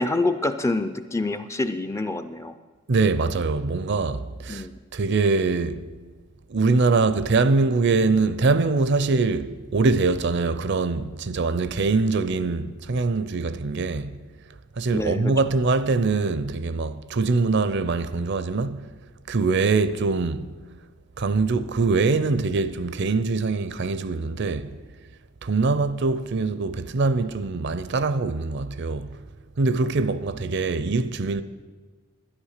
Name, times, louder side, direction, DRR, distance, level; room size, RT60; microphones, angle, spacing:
voice 1, 0.0-2.5 4.5-4.7 14.9-15.3, left 2 dB, 10° left, 0.3 m, -26 dB
voice 2, 2.9-4.7 4.9-5.8 6.5-14.2 14.8-18.9 19.3-20.5 21.2-24.7 25.4-29.2 29.6-31.4, right 3 dB, 50° right, 0.5 m, -23 dB
11.5 x 10.0 x 6.5 m
head